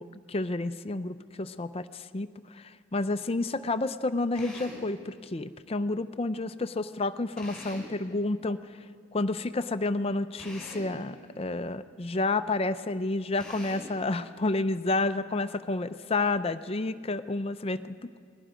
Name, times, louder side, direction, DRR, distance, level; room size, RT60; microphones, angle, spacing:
voice 1, 0.0-8.9 9.1-18.2, left 2 dB, 30° left, 12 dB, 0.5 m, -30 dB
Drill, 4.3-4.9 7.4-8.0 10.4-11.0 13.4-14.0, left 1 dB, 5° left, 5.4 m, -43 dB
27.5 x 20.5 x 5.1 m, 2.1 s
head